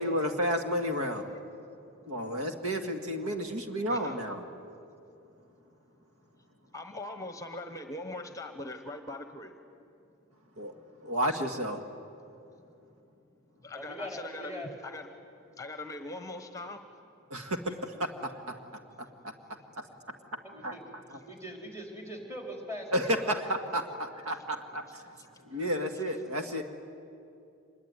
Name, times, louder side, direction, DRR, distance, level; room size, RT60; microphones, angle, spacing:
voice 1, 0.0-1.3 2.1-4.4 10.6-10.7 11.0-11.8 17.3-18.1 18.5-18.6 19.2-19.3 20.6-20.7 22.9-25.2 25.5-26.6, equal, 85° right, 6 dB, 1.9 m, -31 dB
voice 2, 6.3-9.6 13.6-15.2 15.6-16.8 17.4-17.5 18.7-19.7 21.1-21.3 24.3-24.4 24.9-26.0, left 2 dB, 15° left, 8 dB, 1.1 m, -43 dB
voice 3, 13.7-14.7 20.4-20.8 21.2-23.4, equal, 15° right, 2 dB, 4.1 m, -41 dB
25.0 x 21.5 x 9.7 m, 2.6 s
head